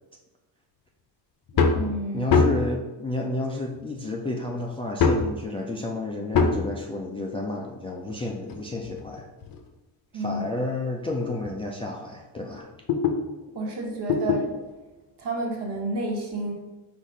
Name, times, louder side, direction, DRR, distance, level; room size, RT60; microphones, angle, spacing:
sound 1, 1.5-1.8 2.3-2.8 3.7-3.8 5.0-5.3 6.3-6.7 8.0-9.7 10.3-10.4 11.0-11.2 11.4-11.5 11.9-13.2 14.1-14.4 15.7-15.8, left 4 dB, 45° left, 0.7 m, -23 dB
voice 1, 1.5-2.3 10.1-10.4 13.5-14.6 15.2-16.5, right 2 dB, 55° right, 0 dB, 1.4 m, -30 dB
voice 2, 2.1-9.3 10.1-12.7, left 2 dB, 10° left, -1 dB, 0.3 m, -31 dB
4.1 x 2.7 x 4.8 m, 1.1 s
cardioid pair, 95°, 49 cm